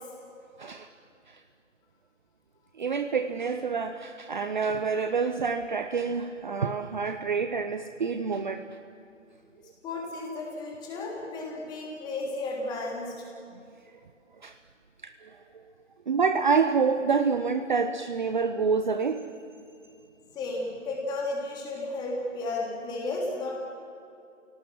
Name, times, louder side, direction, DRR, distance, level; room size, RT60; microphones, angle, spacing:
voice 1, 0.6-0.9 1.3-1.4 2.8-8.6 14.4-14.5 15.0-15.6 16.1-19.2, right 5 dB, 40° right, 8 dB, 0.8 m, -27 dB
voice 2, 9.8-13.1 20.3-23.5, left 2 dB, 10° left, -2 dB, 3.2 m, -33 dB
29.0 x 18.0 x 7.7 m, 2.5 s
figure-of-eight pair, 145°, 38 cm